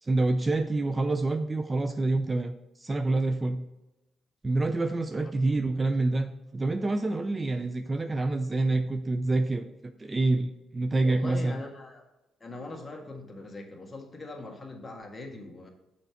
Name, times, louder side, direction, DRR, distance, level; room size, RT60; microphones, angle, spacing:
voice 1, 0.0-2.5 2.8-3.6 4.4-11.6, right 2 dB, 25° right, 8 dB, 0.5 m, -27 dB
voice 2, 11.0-12.0 12.4-15.7, left 2 dB, 25° left, 2 dB, 1.6 m, -41 dB
6.8 x 4.5 x 5.7 m, 0.99 s
cardioid pair, 90°, 0 cm